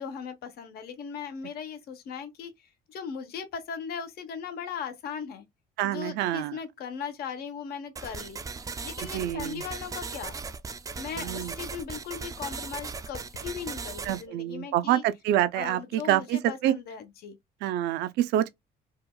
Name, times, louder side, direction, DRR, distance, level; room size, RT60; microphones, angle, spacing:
voice 1, 0.0-5.4 5.8-8.4 8.8-10.4 11.0-15.0 15.6-17.4, left 7 dB, 65° left, 1.0 m, -38 dB
voice 2, 5.8-6.6 9.1-9.6 11.2-11.5 14.0-16.8 17.6-18.5, right 12 dB, 85° right, 0.5 m, -27 dB
sound 1, 8.0-14.2, right 4 dB, 20° right, 0.4 m, -38 dB
4.8 x 2.4 x 2.2 m
cardioid pair, 110°, 17 cm